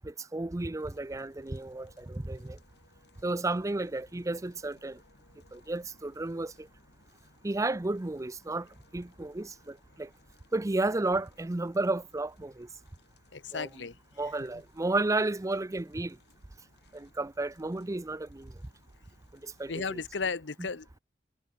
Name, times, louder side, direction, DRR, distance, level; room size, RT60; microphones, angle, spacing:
voice 1, 0.0-2.6 3.2-5.0 5.5-6.7 7.4-8.7 8.9-10.1 10.5-12.7 13.5-13.7 14.2-16.2 16.9-18.5 19.4-20.0 20.6-20.7, right 2 dB, 20° right, 0.5 m, -32 dB
sound 1, 0.8-20.3, left 1 dB, 65° left, 7.3 m, -62 dB
voice 2, 13.3-13.9 19.7-21.0, left 4 dB, 85° left, 1.0 m, -34 dB
head